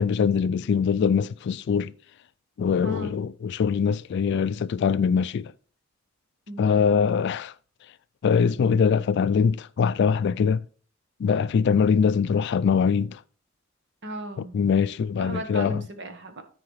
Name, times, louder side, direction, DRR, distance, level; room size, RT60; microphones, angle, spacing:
voice 1, 0.0-1.9 2.6-5.5 6.6-7.5 8.2-10.6 11.2-13.2 14.4-15.8, left 6 dB, 60° left, 0.3 m, -23 dB
voice 2, 2.8-3.2 6.5-6.7 14.0-14.5 15.2-16.4, right 1 dB, 60° right, 1.2 m, -35 dB
13.5 x 4.8 x 3.1 m
head